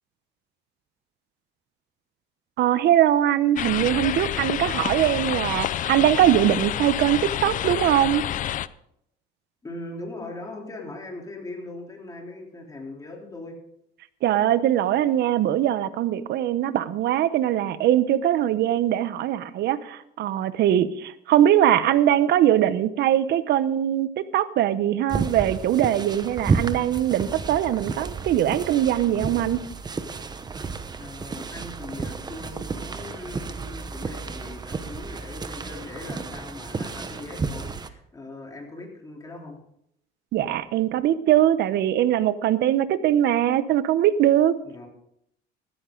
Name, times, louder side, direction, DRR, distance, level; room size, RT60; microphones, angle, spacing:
voice 1, 2.6-8.3 14.2-29.7 40.3-44.6, right 11 dB, 60° right, 15 dB, 0.9 m, -21 dB
sound 1, 3.6-8.7, left 11 dB, 45° left, 0.5 m, -28 dB
voice 2, 9.6-13.6 31.0-39.6 44.6-44.9, left 2 dB, 20° left, 0 dB, 3.5 m, -40 dB
sound 2, 25.1-37.9, right 4 dB, 20° right, 1.0 m, -32 dB
14.5 x 13.5 x 3.9 m, 0.75 s
cardioid pair, 120°, 19 cm